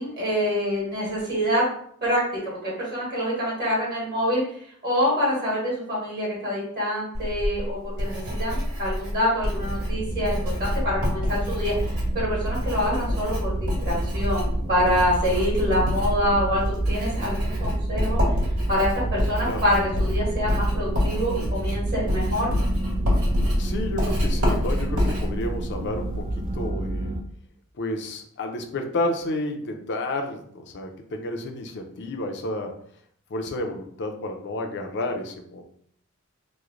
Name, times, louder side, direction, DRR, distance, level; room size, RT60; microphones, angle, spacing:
voice 1, 0.0-1.6 2.0-4.4 4.8-11.9 12.1-18.2 18.7-22.5, equal, 50° right, -5 dB, 1.4 m, -26 dB
Writing, 7.1-26.7, left 1 dB, 90° right, 1.5 m, -27 dB
sound 1, 9.6-27.2, right 2 dB, 25° right, 0.3 m, -30 dB
voice 2, 23.6-27.2 27.8-32.7 33.3-35.6, left 1 dB, 55° left, 4 dB, 0.5 m, -31 dB
3.1 x 2.1 x 3.6 m, 0.63 s
head